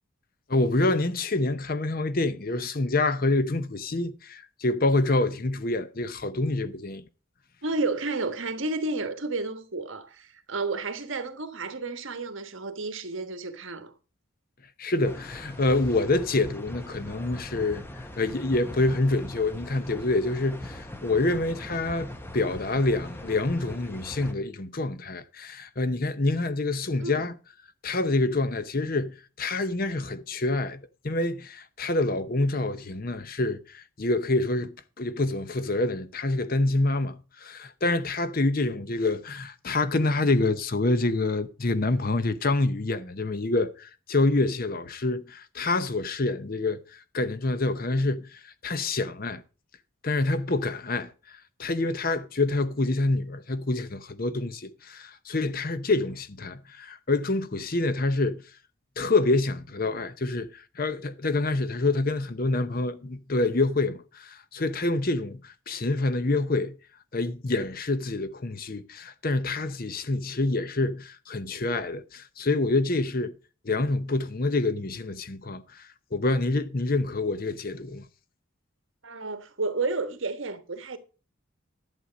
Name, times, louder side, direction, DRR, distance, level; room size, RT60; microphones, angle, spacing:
voice 1, 0.5-7.0 14.8-27.3 27.8-49.4 50.0-58.4 59.0-66.7 67.1-73.3 73.6-78.1, left 2 dB, 45° left, 0.8 m, -27 dB
voice 2, 7.6-13.9 27.0-27.3 79.0-81.0, right 3 dB, 65° right, 1.4 m, -31 dB
sound 1, 15.0-24.3, left 1 dB, 10° left, 0.9 m, -41 dB
11.5 x 7.8 x 5.1 m
head